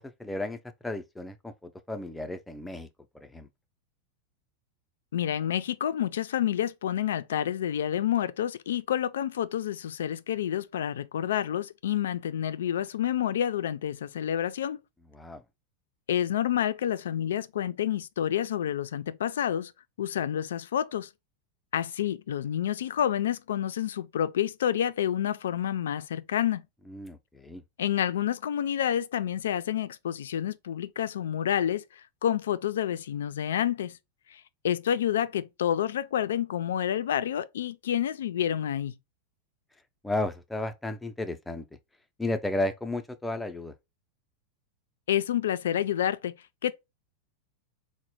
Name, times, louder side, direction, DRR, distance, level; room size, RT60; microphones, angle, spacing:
voice 1, 0.0-2.9 3.1-3.5 15.1-15.4 26.9-27.6 40.0-41.6 42.2-43.7, left 2 dB, 5° left, 0.4 m, -33 dB
voice 2, 5.1-14.8 16.1-19.7 20.0-21.1 21.7-26.6 27.8-31.8 32.2-34.0 34.3-39.0 45.1-46.3 46.6-46.7, left 10 dB, 90° left, 0.3 m, -29 dB
4.0 x 2.1 x 2.9 m
supercardioid pair, 140°, 0 cm